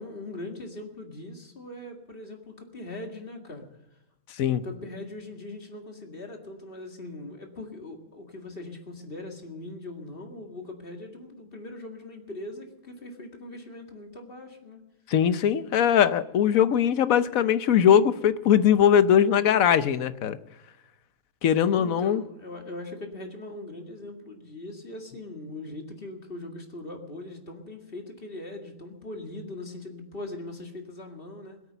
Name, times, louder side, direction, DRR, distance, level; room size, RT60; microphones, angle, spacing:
voice 1, 0.0-3.7 4.6-14.9 21.6-31.6, left 2 dB, 40° left, 3 dB, 2.3 m, -40 dB
voice 2, 15.1-20.4 21.4-22.2, left 9 dB, 70° left, 13 dB, 1.2 m, -21 dB
21.5 x 8.5 x 6.8 m, 0.94 s
omnidirectional pair, 1.5 m